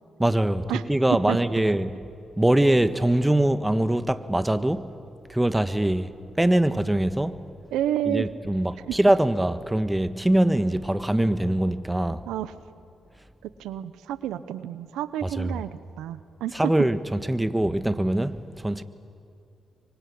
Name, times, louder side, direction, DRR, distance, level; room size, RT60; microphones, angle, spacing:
voice 1, 0.2-1.9 2.4-4.9 5.3-7.4 8.1-12.2 15.2-15.5 16.5-18.8, right 1 dB, 10° right, 1.5 m, -23 dB
voice 2, 7.7-8.3 8.9-9.0 12.3-12.5 13.4-16.7, right 11 dB, 85° right, 0.8 m, -30 dB
26.5 x 24.0 x 8.7 m
supercardioid pair, 55°, 0 cm